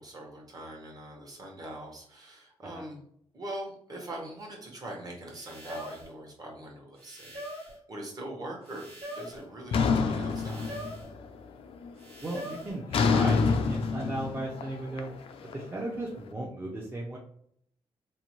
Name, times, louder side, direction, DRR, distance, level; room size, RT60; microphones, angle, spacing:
voice 1, 0.0-3.0 3.3-10.8, right 1 dB, 40° right, 0 dB, 1.0 m, -42 dB
sound 1, 4.4-4.5 5.3-6.1 7.0-7.8 8.6-9.5 10.3-11.1 12.0-12.8, equal, 80° right, 1.2 m, -42 dB
sound 2, 9.7-11.3 11.6-12.0 12.9-16.0, left 5 dB, 65° left, 0.4 m, -27 dB
voice 2, 12.2-15.1 15.5-17.2, right 1 dB, 20° right, -4 dB, 0.5 m, -36 dB
2.6 x 2.1 x 3.0 m, 0.66 s
cardioid pair, 105°, 10 cm